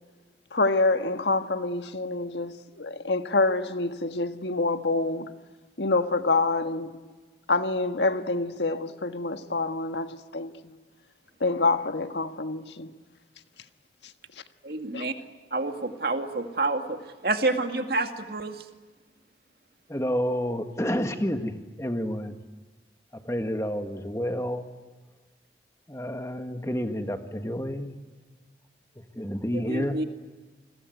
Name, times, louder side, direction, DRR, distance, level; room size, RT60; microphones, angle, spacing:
voice 1, 0.5-5.3 5.8-7.0 7.5-10.8 11.4-12.9 14.0-14.1 14.9-15.1, left 3 dB, 85° left, 1.5 m, -27 dB
voice 2, 14.6-15.1 15.5-18.7 29.5-30.0, right 2 dB, 60° right, 2.2 m, -28 dB
voice 3, 19.9-22.4 23.1-24.7 25.9-27.9 29.1-30.0, equal, 15° left, 1.7 m, -29 dB
29.0 x 21.5 x 9.5 m
head